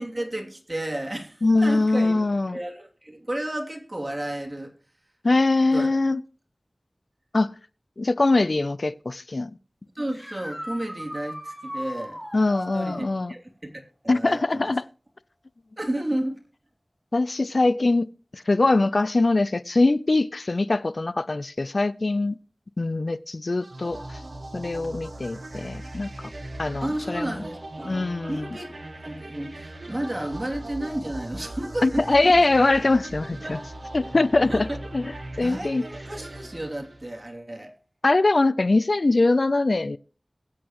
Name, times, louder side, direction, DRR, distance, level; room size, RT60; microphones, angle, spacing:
voice 1, 0.0-4.7 5.7-5.9 9.9-12.2 12.7-14.7 15.8-16.4 26.8-28.7 29.0-32.4 33.4-33.6 34.5-34.8 35.4-37.7, right 1 dB, 35° right, 2.9 m, -32 dB
voice 2, 1.4-2.6 5.2-6.2 7.3-7.5 8.0-9.5 12.3-13.3 14.1-14.8 17.1-22.4 22.8-24.2 24.5-26.1 26.6-27.4 27.8-28.5 31.8-33.6 33.9-34.7 34.9-35.1 35.4-35.8 38.0-40.0, left 2 dB, 65° left, 0.5 m, -22 dB
sound 1, 10.1-13.1 16.4-16.5 18.5-18.6 24.8-24.9, equal, ahead, 5.7 m, -37 dB
sound 2, 23.6-37.3, right 1 dB, 75° right, 2.1 m, -39 dB
22.5 x 8.4 x 3.1 m
wide cardioid pair, 50°, 0 cm